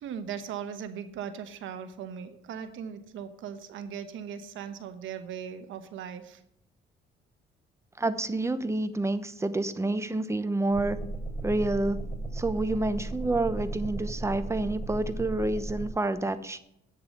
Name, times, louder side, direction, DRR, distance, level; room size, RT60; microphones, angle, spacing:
voice 1, 0.0-6.4, right 8 dB, 80° right, 9 dB, 1.1 m, -39 dB
voice 2, 8.0-11.0 11.4-12.0 12.3-16.6, right 2 dB, 15° right, 10 dB, 0.9 m, -28 dB
sound 1, 10.7-15.9, right 2 dB, 15° left, 4.2 m, -35 dB
8.8 x 6.8 x 7.6 m, 0.75 s
cardioid pair, 90°, 20 cm